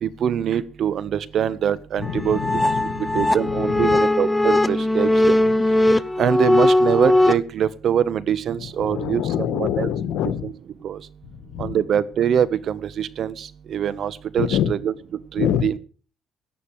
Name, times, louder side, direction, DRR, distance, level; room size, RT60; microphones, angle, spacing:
voice 1, 0.0-2.4 3.1-5.4 6.2-9.2 9.6-9.9 10.4-10.5 10.8-11.0 11.6-14.9 15.3-15.7, right 9 dB, 65° right, 16 dB, 1.3 m, -23 dB
voice 2, 2.0-4.0 5.4-5.5 8.6-10.5 11.2-11.8 14.4-14.7 15.4-15.7, left 10 dB, 90° left, 12 dB, 1.6 m, -26 dB
sound 1, 2.0-7.3, left 1 dB, 10° left, 1.0 m, -19 dB
17.0 x 11.0 x 4.9 m, 0.39 s
cardioid pair, 90°, 0 cm